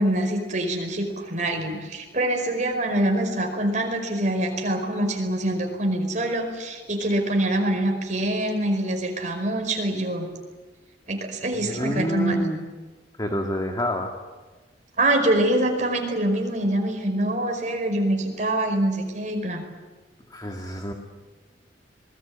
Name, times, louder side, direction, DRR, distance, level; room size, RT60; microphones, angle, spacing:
voice 1, 0.0-10.3 11.1-12.4 15.0-19.6, right 1 dB, 45° right, 4 dB, 5.0 m, -25 dB
voice 2, 11.6-12.6 13.2-14.1 20.3-20.9, left 1 dB, 20° left, 2 dB, 2.2 m, -28 dB
26.5 x 21.0 x 8.8 m, 1.3 s
head